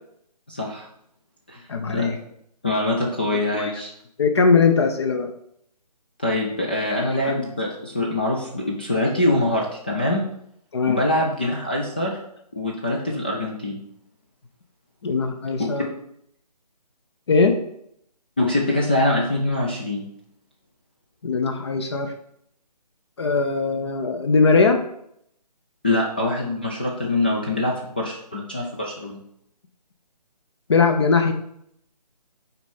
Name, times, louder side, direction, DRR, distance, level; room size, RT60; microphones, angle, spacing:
voice 1, 0.5-0.9 1.5-1.6 1.9-2.1 2.6-3.9 6.2-10.2 10.9-12.2 12.6-13.8 18.4-20.1 25.8-29.2, left 1 dB, 15° left, -2 dB, 0.4 m, -24 dB
voice 2, 1.7-2.2 3.5-3.7 4.2-5.3 7.0-7.3 10.7-11.0 15.0-15.8 17.3-17.6 21.2-22.1 23.2-24.8 30.7-31.3, left 4 dB, 40° left, 6 dB, 0.7 m, -20 dB
5.9 x 4.3 x 5.4 m, 0.73 s
figure-of-eight pair, 155°, 21 cm